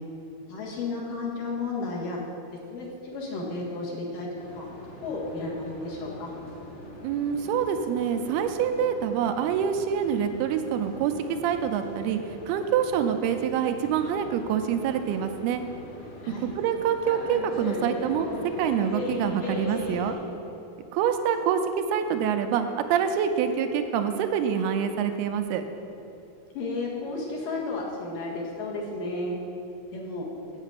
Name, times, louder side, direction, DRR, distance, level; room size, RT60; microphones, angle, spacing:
voice 1, 0.5-2.2 2.7-4.3 4.5-4.7 5.0-6.3 16.2-16.5 26.5-29.4 29.9-30.3, left 3 dB, 65° left, -3 dB, 3.0 m, -33 dB
sound 1, 4.3-20.1, left 2 dB, 45° left, 1.6 m, -39 dB
voice 2, 7.0-12.2 12.5-15.6 16.4-18.3 18.6-20.2 20.9-25.6, right 8 dB, 85° right, 7 dB, 2.6 m, -26 dB
8.1 x 6.8 x 8.3 m, 2.9 s
omnidirectional pair, 4.5 m